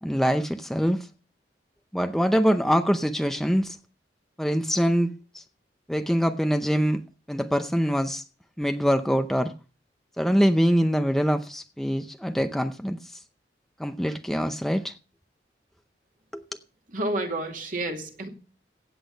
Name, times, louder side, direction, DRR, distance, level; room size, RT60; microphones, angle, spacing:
voice 1, 0.0-1.1 1.9-3.8 4.4-5.1 5.3-5.4 5.9-7.0 7.3-8.2 8.6-9.5 10.2-13.2 13.8-14.9 16.3-16.4, equal, ahead, 0.6 m, -24 dB
voice 2, 16.9-18.3, right 1 dB, 45° right, 2.4 m, -30 dB
16.0 x 8.4 x 5.3 m
head